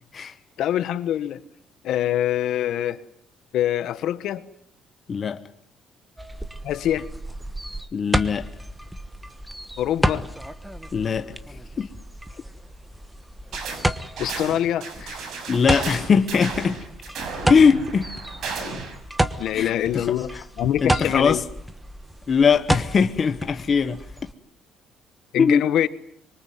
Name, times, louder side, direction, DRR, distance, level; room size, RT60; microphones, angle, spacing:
voice 1, 0.6-1.4 1.8-3.0 3.5-4.4 6.6-7.1 9.8-10.3 14.2-15.2 19.4-21.4 25.3-25.9, left 11 dB, 60° left, 1.4 m, -24 dB
sound 1, 6.2-24.3, right 1 dB, 5° right, 1.2 m, -31 dB
voice 2, 7.9-8.5 10.9-11.3 11.8-11.9 15.5-16.8 17.5-18.1 19.5-20.0 20.8-21.4 22.3-24.0 25.4-25.6, left 6 dB, 30° left, 1.2 m, -20 dB
sound 2, 13.5-13.9 14.2-19.0, right 4 dB, 55° right, 6.4 m, -34 dB
26.0 x 24.0 x 9.5 m
cardioid pair, 170°, 0 cm